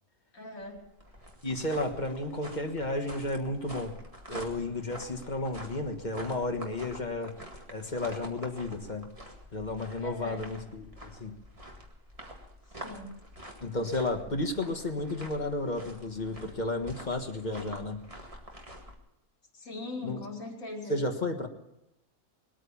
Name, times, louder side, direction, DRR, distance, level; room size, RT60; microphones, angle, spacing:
voice 1, 0.3-0.8 10.0-10.4 12.8-13.1 19.5-21.0, left 2 dB, 65° left, 1 dB, 3.2 m, -40 dB
sound 1, 0.6-18.9, equal, 25° right, 2.0 m, -47 dB
voice 2, 1.4-4.0 4.3-7.4 7.7-9.1 9.5-11.4 13.6-18.0 20.0-20.2 20.9-21.5, left 2 dB, 35° left, 5 dB, 1.5 m, -32 dB
20.5 x 9.1 x 7.1 m, 0.88 s
omnidirectional pair, 1.4 m